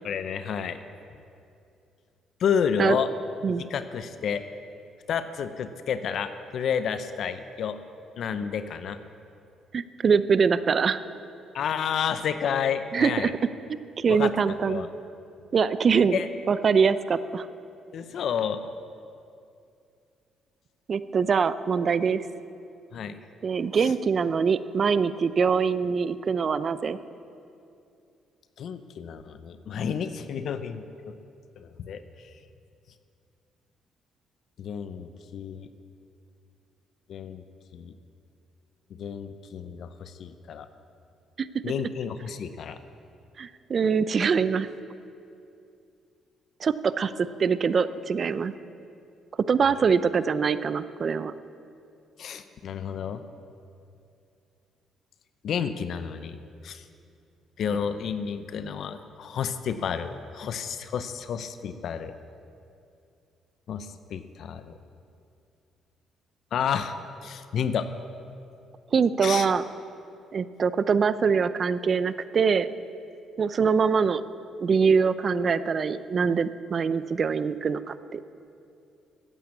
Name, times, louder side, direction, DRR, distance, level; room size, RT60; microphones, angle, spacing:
voice 1, 0.0-0.8 2.4-3.1 3.5-4.4 5.1-7.8 8.2-9.0 11.5-13.3 14.1-14.3 14.7-14.9 16.1-16.3 17.9-18.6 22.9-23.2 28.6-31.2 31.6-32.0 34.6-35.7 37.1-37.4 37.7-37.9 39.0-40.7 41.6-42.8 52.2-53.2 55.4-56.4 56.6-56.8 57.6-62.1 63.7-64.8 66.5-67.0 67.2-67.9 69.2-69.5, left 7 dB, 65° left, 11 dB, 0.7 m, -30 dB
voice 2, 9.7-11.0 12.9-13.3 13.7-14.9 15.5-16.2 16.5-17.5 20.9-22.2 23.4-27.0 41.4-41.5 43.4-44.7 46.6-48.5 49.5-51.3 68.9-69.6 70.3-72.7 73.4-74.2 74.6-78.2, right 6 dB, 50° right, 14 dB, 0.6 m, -23 dB
14.0 x 8.6 x 8.5 m, 2.6 s
supercardioid pair, 55°, 0 cm